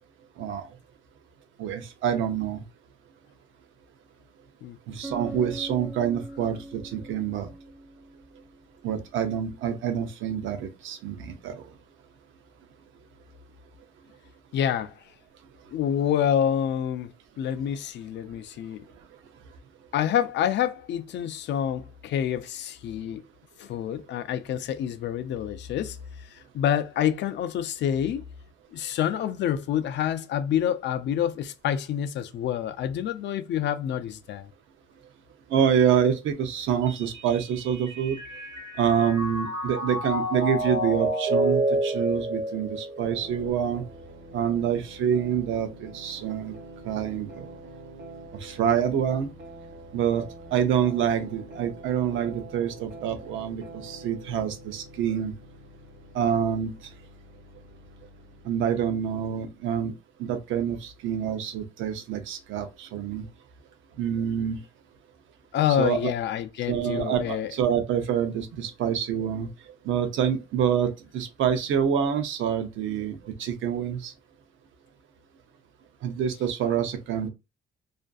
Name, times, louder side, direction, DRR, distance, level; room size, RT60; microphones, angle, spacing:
voice 1, 1.6-2.6 4.9-7.5 8.8-11.5 35.5-38.2 38.8-43.8 44.3-46.5 46.8-47.5 48.4-49.3 49.9-55.3 56.1-56.7 58.4-59.9 60.2-63.2 64.0-64.6 65.8-66.1 66.7-69.5 69.8-74.1 76.0-77.3, right 8 dB, 80° right, 0.6 m, -27 dB
Bass guitar, 5.0-8.9, right 1 dB, 5° left, 0.5 m, -42 dB
voice 2, 14.5-14.9 15.7-18.9 19.9-23.2 23.6-28.2 28.7-34.5 65.5-67.5, left 10 dB, 65° left, 0.4 m, -27 dB
Mallet percussion, 36.9-43.3, right 1 dB, 40° right, 0.6 m, -29 dB
sound 1, 43.0-59.8, right 1 dB, 60° right, 1.0 m, -46 dB
2.5 x 2.2 x 2.4 m
cardioid pair, 90°, 20 cm